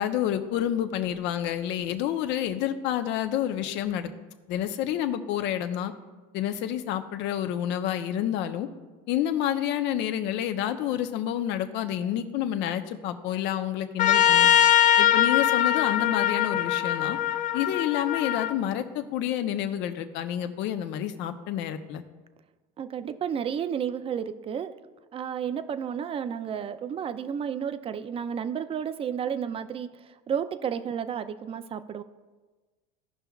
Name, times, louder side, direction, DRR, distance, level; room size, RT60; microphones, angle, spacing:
voice 1, 0.0-4.1 4.5-5.9 6.3-8.7 9.1-14.5 15.0-17.2 17.5-22.0, left 11 dB, 60° left, 8 dB, 0.9 m, -29 dB
Trumpet, 14.0-18.5, left 11 dB, 35° left, 0.5 m, -22 dB
voice 2, 22.8-24.7 25.1-29.9 30.3-32.0, right 8 dB, 25° right, 12 dB, 0.5 m, -31 dB
16.5 x 5.7 x 2.4 m, 1.3 s
supercardioid pair, 110°, 21 cm